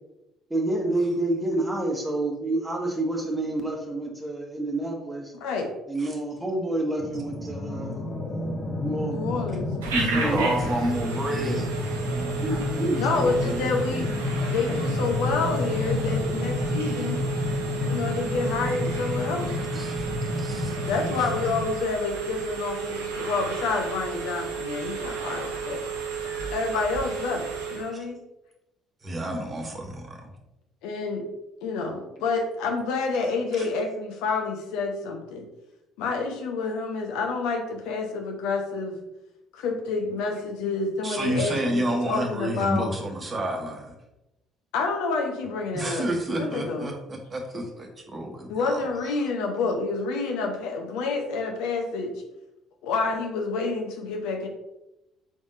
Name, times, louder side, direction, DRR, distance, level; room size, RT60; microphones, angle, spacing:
voice 1, 0.5-5.3 5.9-8.4 8.8-9.3 10.1-10.6 12.4-13.7 13.9-14.0, right 2 dB, 10° right, 1 dB, 1.2 m, -29 dB
sound 1, 7.0-21.7, left 2 dB, 20° left, 0.9 m, -30 dB
voice 2, 9.1-9.7 13.0-14.1 14.5-17.2 17.8-19.6 20.9-25.8 26.5-28.2 30.8-31.3 31.6-35.4 36.0-39.0 39.5-42.9 44.7-46.1 46.3-46.9 48.5-52.1 52.8-54.5, left 4 dB, 65° left, 3 dB, 0.7 m, -28 dB
Telephone, 9.8-27.9, right 5 dB, 75° right, 0.6 m, -33 dB
voice 3, 9.9-11.7 19.7-20.1 20.4-20.8 29.0-30.2 41.0-43.9 45.7-48.8, right 1 dB, 30° right, 2 dB, 1.0 m, -29 dB
5.2 x 3.5 x 2.6 m, 0.91 s
figure-of-eight pair, 50°, 0 cm